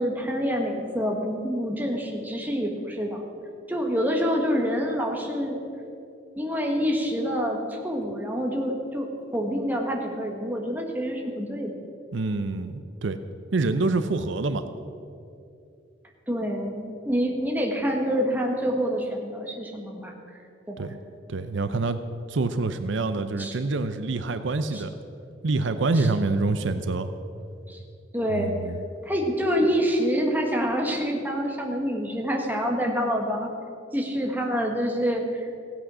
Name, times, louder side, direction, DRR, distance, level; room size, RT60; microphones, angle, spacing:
voice 1, 0.0-3.2 3.7-5.6 6.4-11.8 16.3-20.1 20.7-20.9 23.4-23.5 24.7-24.8 25.9-26.1 27.7-27.8 28.1-28.5 29.0-33.5 33.9-35.5, equal, 10° right, 1 dB, 1.4 m, -27 dB
voice 2, 12.1-13.2 13.5-14.7 20.8-20.9 21.3-22.0 22.3-24.9 25.4-27.1 28.3-28.8, right 3 dB, 70° right, 10 dB, 0.6 m, -26 dB
16.0 x 8.8 x 6.2 m, 2.6 s
head